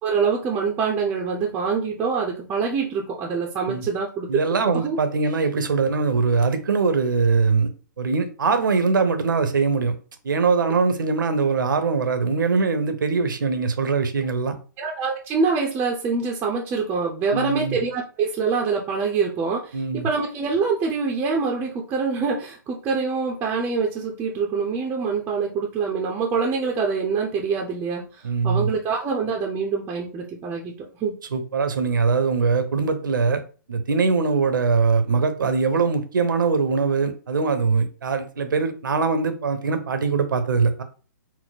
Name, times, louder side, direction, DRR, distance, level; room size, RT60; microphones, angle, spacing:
voice 1, 0.0-4.3 4.7-5.0 14.8-31.2, right 5 dB, 20° right, 0.7 m, -25 dB
voice 2, 4.3-7.7 8.0-10.0 10.2-14.5 17.3-17.8 19.7-20.1 28.2-28.7 31.3-33.4 33.7-40.8, right 4 dB, 75° right, 0.8 m, -22 dB
4.2 x 2.1 x 4.0 m
hypercardioid pair, 135°, 11 cm